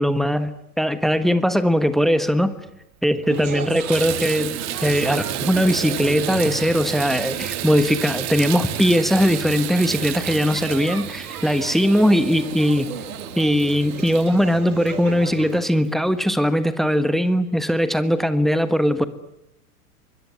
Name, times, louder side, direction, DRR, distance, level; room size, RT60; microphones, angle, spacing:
voice 1, 0.0-2.5 3.0-12.9 13.4-19.0, equal, ahead, 1.4 m, -20 dB
Water tap faucet / Bathtub (filling or washing), 2.7-2.8 3.2-15.6 16.3-16.4 16.9-17.0, right 14 dB, 35° right, 2.2 m, -32 dB
sound 1, 3.3-15.6, right 5 dB, 75° right, 3.2 m, -35 dB
24.5 x 21.5 x 9.5 m
figure-of-eight pair, 90°, 45 cm